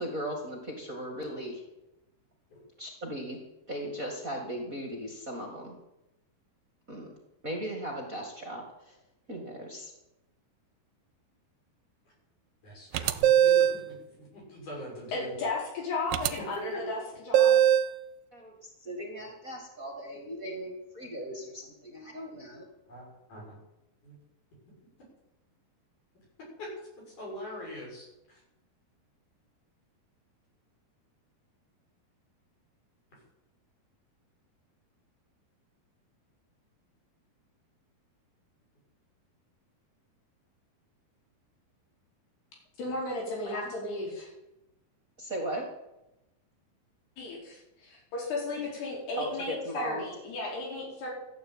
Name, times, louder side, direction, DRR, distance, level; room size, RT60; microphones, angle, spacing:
voice 1, 0.0-1.6 2.8-3.4 3.7-5.8 6.9-7.1 7.4-8.9 9.3-9.9 18.3-22.7 43.4-43.6 45.2-45.7 49.2-50.0, equal, 30° right, 0 dB, 1.7 m, -37 dB
voice 2, 12.6-15.4 16.7-16.8 22.9-23.6 24.0-24.1 26.6-26.7 27.2-28.1, left 1 dB, 50° left, -3 dB, 8.4 m, -42 dB
sound 1, 12.9-13.8 16.1-16.3 17.3-17.9, right 10 dB, 75° right, 2.2 m, -21 dB
voice 3, 15.1-17.6 42.8-44.3 47.2-51.1, left 2 dB, 85° left, -3 dB, 6.9 m, -35 dB
14.5 x 9.4 x 8.8 m, 0.93 s
omnidirectional pair, 4.5 m